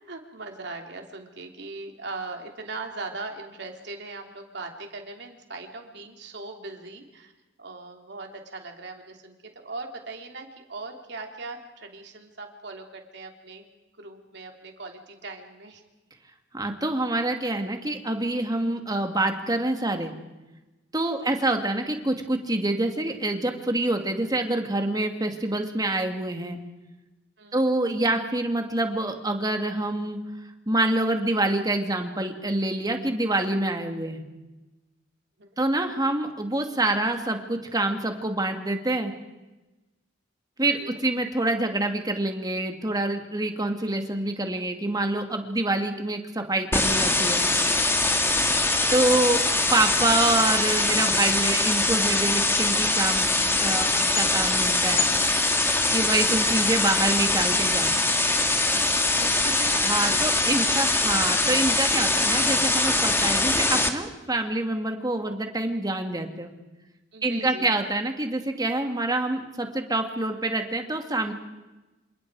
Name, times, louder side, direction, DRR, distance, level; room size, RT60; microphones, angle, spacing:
voice 1, 0.0-7.3 7.6-9.4 9.6-13.7 14.0-15.8 21.1-21.3 27.4-27.7 35.4-35.5 40.8-41.0 59.2-61.1 67.1-67.7, right 3 dB, 65° right, 3 dB, 3.2 m, -40 dB
voice 2, 16.5-20.1 20.9-26.6 27.5-30.2 30.7-34.2 35.6-39.1 40.6-47.4 48.9-49.4 49.7-53.3 53.6-55.1 55.9-57.9 59.8-66.5 67.2-71.3, right 2 dB, 20° right, 5 dB, 2.2 m, -26 dB
sound 1, 46.7-63.9, left 2 dB, 15° left, 1.8 m, -23 dB
27.5 x 26.5 x 4.8 m, 1.1 s
head